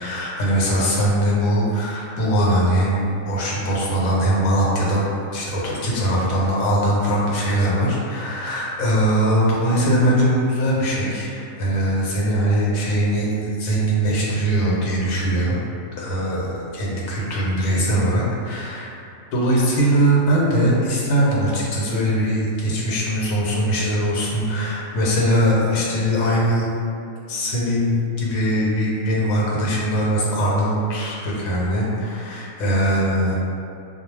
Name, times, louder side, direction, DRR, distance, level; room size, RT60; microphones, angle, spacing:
voice 1, 0.0-5.1 5.3-15.6 16.0-18.9 19.3-26.7 27.3-33.3, right 1 dB, 80° left, -5 dB, 1.0 m, -21 dB
2.3 x 2.1 x 3.1 m, 2.6 s
omnidirectional pair, 1.5 m